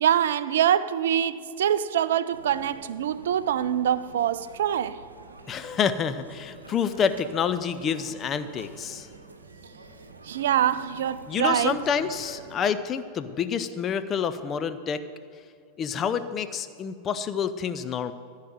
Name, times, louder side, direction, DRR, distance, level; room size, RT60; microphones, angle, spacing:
voice 1, 0.0-5.0 10.2-11.8, right 10 dB, 60° right, 0.4 m, -24 dB
sound 1, 2.3-12.6, right 3 dB, 75° right, 0.9 m, -47 dB
voice 2, 5.5-9.1 11.3-15.0 15.8-18.1, left 7 dB, 25° left, 0.7 m, -28 dB
14.5 x 5.7 x 7.8 m
figure-of-eight pair, 90°, 0 cm